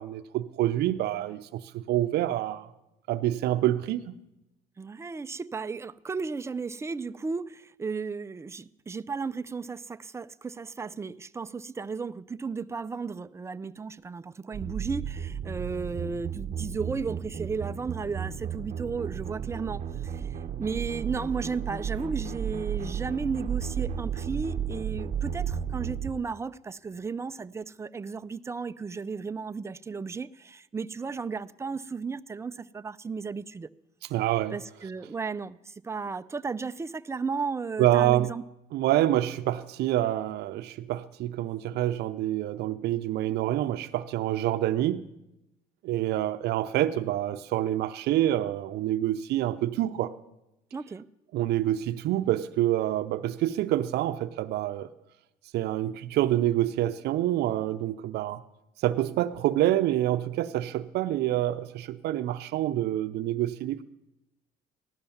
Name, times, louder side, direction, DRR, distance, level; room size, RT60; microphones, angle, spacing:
voice 1, 0.0-2.7 3.1-4.2 34.1-34.6 37.8-38.3 38.7-45.0 45.8-50.1 51.3-54.9 55.5-58.4 58.8-63.8, right 13 dB, 75° right, 0.6 m, -27 dB
voice 2, 4.8-33.7 34.5-38.4 50.7-51.0, right 5 dB, 15° right, 0.4 m, -34 dB
sound 1, 14.5-26.1, right 8 dB, 40° right, 0.8 m, -33 dB
15.5 x 12.0 x 7.1 m
cardioid pair, 110°, 17 cm